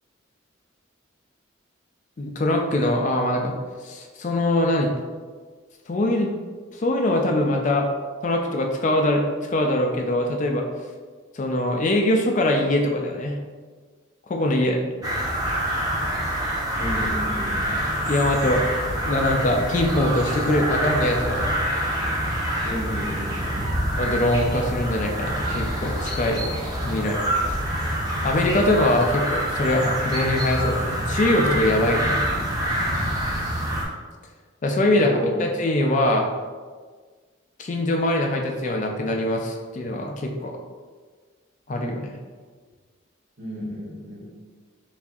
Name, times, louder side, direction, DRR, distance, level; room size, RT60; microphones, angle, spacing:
voice 1, 2.2-3.5 3.8-4.9 5.9-6.4 6.7-7.9 8.2-9.2 9.5-10.7 11.3-13.4 14.3-14.8 18.1-18.6 19.0-21.5 24.0-26.4 26.8-27.2 27.5-27.6 28.2-32.2 34.6-36.3 37.6-40.5 41.7-42.1, left 1 dB, 35° left, 2 dB, 0.4 m, -22 dB
sound 1, 15.0-33.8, equal, 20° right, 0.5 m, -26 dB
voice 2, 16.7-17.7 22.6-23.7 35.0-35.4 43.4-44.2, equal, 80° right, -7 dB, 1.4 m, -32 dB
4.1 x 3.4 x 2.3 m, 1.5 s
head